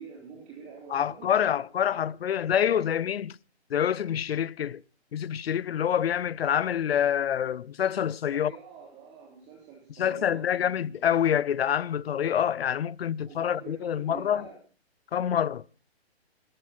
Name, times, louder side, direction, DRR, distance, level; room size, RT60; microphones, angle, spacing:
voice 1, 0.0-1.6 8.3-10.9 13.3-14.6, right 6 dB, 20° right, 3.8 m, -46 dB
voice 2, 0.9-3.4 3.7-4.8 5.1-8.5 10.0-14.5 15.1-15.6, left 9 dB, 65° left, 0.7 m, -26 dB
20.5 x 14.0 x 4.4 m
hypercardioid pair, 160°, 33 cm